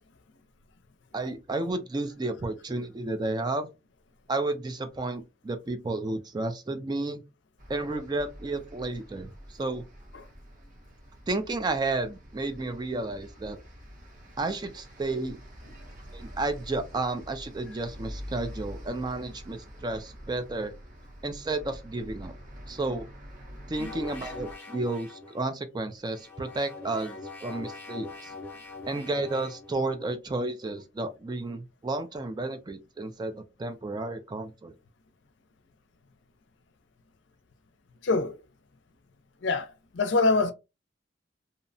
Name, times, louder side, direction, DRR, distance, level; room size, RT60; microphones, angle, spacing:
voice 1, 1.1-3.7 4.3-7.2 7.7-9.8 11.3-13.6 14.4-15.4 16.1-20.7 21.2-22.3 22.7-23.1 23.7-28.3 28.9-34.7, right 2 dB, 25° right, 0.4 m, -32 dB
sound 1, 7.6-24.6, equal, 45° right, 0.8 m, -46 dB
sound 2, 23.7-25.3 26.1-29.7, left 3 dB, 10° left, 0.8 m, -42 dB
voice 2, 38.0-38.4 39.4-40.5, left 3 dB, 75° left, 0.5 m, -25 dB
2.7 x 2.1 x 2.6 m
head